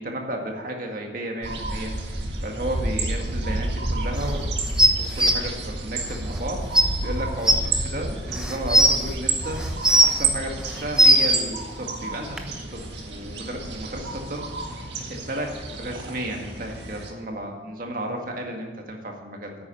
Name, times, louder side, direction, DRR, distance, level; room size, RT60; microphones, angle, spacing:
voice 1, 0.0-1.9 2.4-4.5 5.1-19.6, right 1 dB, 50° right, 2 dB, 1.9 m, -33 dB
sound 1, 1.4-17.1, right 2 dB, 80° right, 1.8 m, -30 dB
sound 2, 4.8-5.3 6.4-6.5 6.7-6.8 7.5-7.6 8.3-9.0 9.6-10.2 10.7-11.4 12.4-12.5, right 1 dB, 5° right, 0.9 m, -16 dB
10.0 x 8.8 x 7.0 m, 1.5 s
head